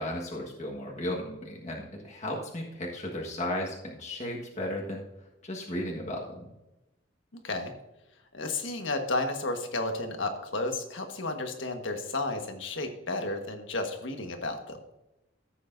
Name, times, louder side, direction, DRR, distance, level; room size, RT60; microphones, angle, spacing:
voice 1, 0.0-5.0 5.4-6.5, left 1 dB, 35° left, -2 dB, 1.5 m, -35 dB
voice 2, 8.3-14.8, left 2 dB, 80° left, 5 dB, 1.5 m, -32 dB
14.5 x 8.3 x 2.6 m, 0.93 s
head